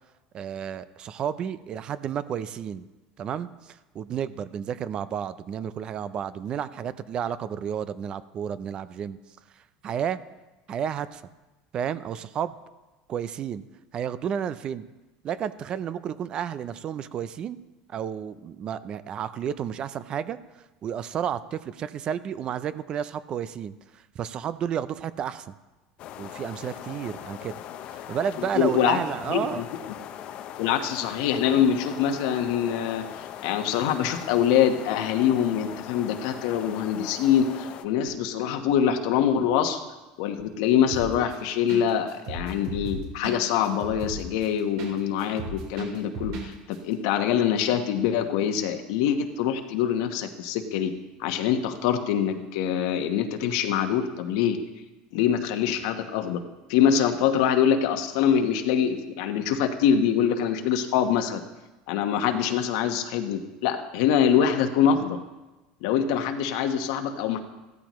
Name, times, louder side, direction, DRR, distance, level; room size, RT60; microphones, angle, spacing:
voice 1, 0.3-2.9 3.2-9.2 9.8-10.2 10.7-11.2 11.7-12.6 13.1-13.6 13.9-14.8 15.2-17.6 17.9-25.5 26.2-27.6 27.9-29.6, right 8 dB, 35° right, 15 dB, 0.5 m, -31 dB
sound 1, 26.0-37.8, left 10 dB, 45° left, 0.7 m, -40 dB
voice 2, 28.6-29.0 29.3-29.6 30.6-39.8 40.2-50.9 51.2-54.6 55.1-56.4 56.7-61.4 61.9-65.2 65.8-67.4, left 8 dB, 75° left, 6 dB, 1.2 m, -24 dB
sound 2, 40.9-41.3 41.7-41.8 42.1-44.9 45.2-46.5 46.7-46.8, right 3 dB, 75° right, 3.7 m, -35 dB
14.5 x 13.5 x 3.1 m, 1.1 s
supercardioid pair, 140°, 3 cm